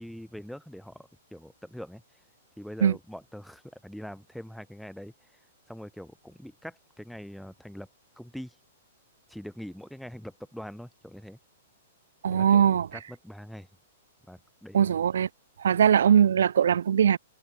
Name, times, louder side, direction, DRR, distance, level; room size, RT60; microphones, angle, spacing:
voice 1, 0.0-2.0 2.6-5.1 5.7-7.9 8.2-8.6 9.3-11.4 12.3-12.6 12.9-13.7 14.3-14.9, equal, ahead, 2.9 m, -43 dB
voice 2, 12.2-12.9 14.7-15.3 15.6-17.2, right 8 dB, 80° right, 0.3 m, -21 dB
hypercardioid pair, 140°, 0 cm